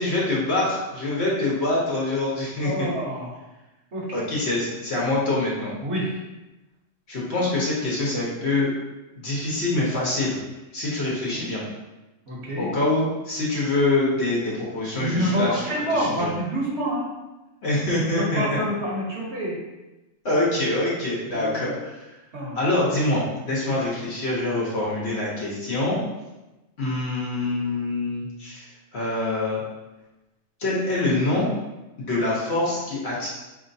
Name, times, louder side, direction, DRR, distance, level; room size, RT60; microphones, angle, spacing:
voice 1, 0.0-2.9 4.1-5.7 7.1-8.7 9.2-10.3 10.7-11.6 12.6-15.6 15.9-16.3 17.6-18.4 20.2-22.1 22.5-26.0 26.8-28.7 28.9-29.6 30.6-31.5 32.0-33.3, left 2 dB, 55° left, -5 dB, 1.3 m, -25 dB
voice 2, 2.6-3.4 3.9-4.2 5.8-6.2 11.3-11.5 12.3-12.7 15.0-17.1 18.2-19.6 21.3-21.7 22.3-22.6, equal, 60° right, -4 dB, 1.2 m, -27 dB
4.2 x 3.2 x 2.6 m, 1.0 s
omnidirectional pair, 1.3 m